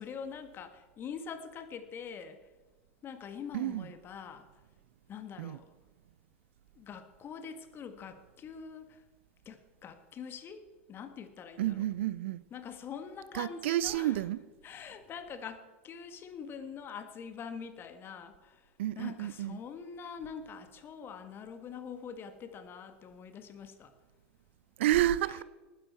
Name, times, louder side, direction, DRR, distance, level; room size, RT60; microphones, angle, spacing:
voice 1, 0.0-2.4 3.0-4.5 5.1-5.6 6.8-9.0 9.5-11.8 12.5-14.2 14.6-18.7 19.0-23.9, left 6 dB, 35° left, 1.7 m, -44 dB
voice 2, 3.5-3.9 5.4-5.6 11.6-12.4 13.3-14.4 18.8-19.6 24.8-25.4, right 13 dB, 65° right, 0.5 m, -30 dB
19.5 x 9.9 x 4.5 m
hypercardioid pair, 90°, 7 cm